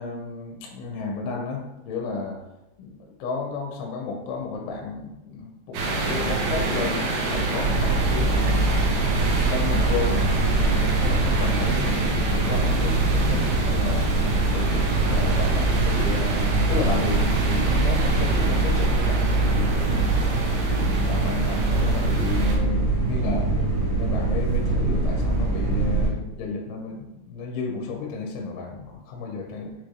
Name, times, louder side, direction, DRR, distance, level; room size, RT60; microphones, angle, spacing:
voice 1, 0.0-2.4 2.8-8.5 9.2-12.2 12.4-14.1 14.5-20.2 20.7-23.5 24.0-29.7, left 4 dB, 85° left, 1 dB, 2.5 m, -32 dB
sound 1, 5.7-22.6, right 3 dB, 75° right, 2.2 m, -28 dB
sound 2, 7.6-26.1, right 2 dB, 50° right, 1.8 m, -23 dB
6.4 x 2.5 x 3.1 m, 0.95 s
omnidirectional pair, 4.8 m